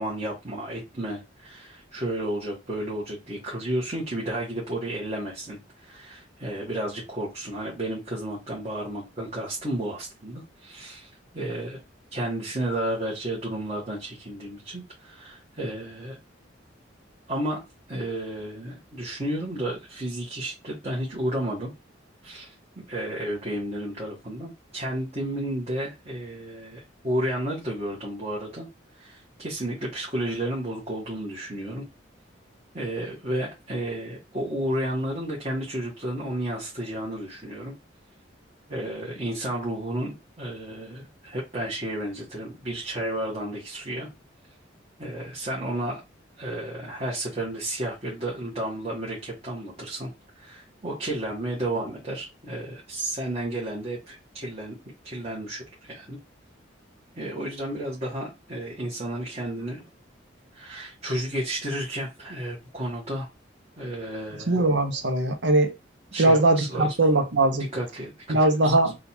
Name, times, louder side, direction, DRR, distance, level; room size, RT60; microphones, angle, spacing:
voice 1, 0.0-11.8 12.1-16.2 17.3-17.6 17.9-21.7 22.2-22.5 22.9-28.7 28.9-31.8 32.7-37.7 38.7-44.1 45.0-46.0 46.4-50.1 50.3-54.7 55.0-56.2 57.1-59.8 60.5-63.3 63.8-64.6 66.1-66.9 67.7-68.9, right 1 dB, 30° right, 1.4 m, -32 dB
voice 2, 64.5-65.7 66.2-67.7 68.3-69.0, right 2 dB, 65° right, 0.8 m, -21 dB
3.8 x 2.4 x 4.2 m
head